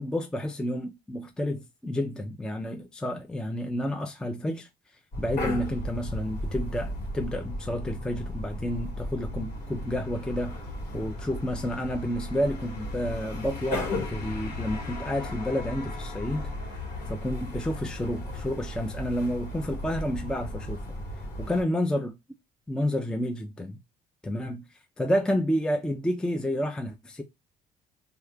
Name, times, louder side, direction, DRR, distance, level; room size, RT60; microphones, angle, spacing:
voice 1, 0.0-4.7 5.2-10.5 10.9-16.5 17.1-20.8 21.5-22.1 22.7-23.8 24.2-24.6 25.0-27.2, equal, 5° left, 0.4 m, -30 dB
sound 1, 5.1-21.6, left 1 dB, 65° left, 1.7 m, -35 dB
2.7 x 2.3 x 3.4 m
cardioid pair, 110°, 17 cm